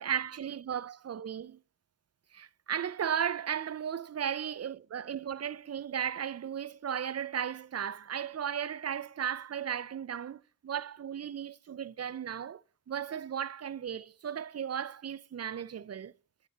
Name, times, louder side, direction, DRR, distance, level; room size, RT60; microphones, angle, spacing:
voice 1, 0.0-1.6 2.3-12.6 12.9-16.1, right 8 dB, 50° right, 0.5 m, -35 dB
9.3 x 5.3 x 7.1 m
cardioid pair, 45°, 33 cm